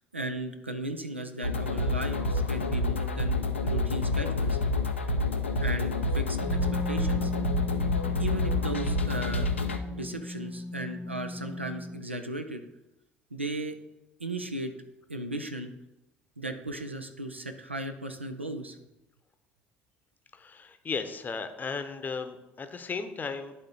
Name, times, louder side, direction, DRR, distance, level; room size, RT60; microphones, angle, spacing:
voice 1, 0.1-4.6 5.6-6.4 6.9-7.3 8.2-9.5 9.8-12.6 13.3-13.7 14.2-14.7 15.1-15.7 16.4-18.8, right 2 dB, 90° right, 7 dB, 0.4 m, -36 dB
sound 1, 1.4-9.8, left 2 dB, 85° left, 0.4 m, -28 dB
Wind instrument woodwind instrument, 6.3-12.0, left 1 dB, 15° left, 0.3 m, -36 dB
voice 2, 20.3-23.5, left 5 dB, 30° left, 9 dB, 0.7 m, -35 dB
10.5 x 3.6 x 4.0 m, 0.96 s
figure-of-eight pair, 55°, 6 cm